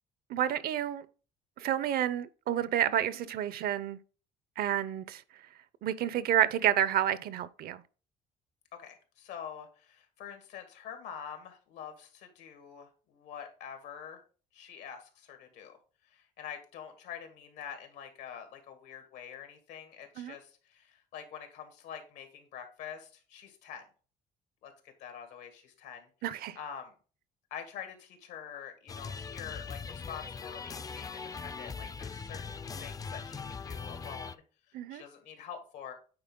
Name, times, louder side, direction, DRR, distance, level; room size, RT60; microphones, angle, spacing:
voice 1, 0.3-1.1 1.6-4.0 4.6-5.2 5.8-7.8 20.2-20.4 26.2-26.6 34.7-35.0, right 11 dB, 65° right, 0.6 m, -29 dB
voice 2, 8.8-14.2 14.5-15.8 16.0-23.8 24.6-26.1 26.5-26.9 27.5-35.9, left 8 dB, 90° left, 1.8 m, -46 dB
sound 1, 28.9-34.4, left 5 dB, 20° left, 0.3 m, -41 dB
8.8 x 4.2 x 3.7 m
cardioid pair, 110°, 17 cm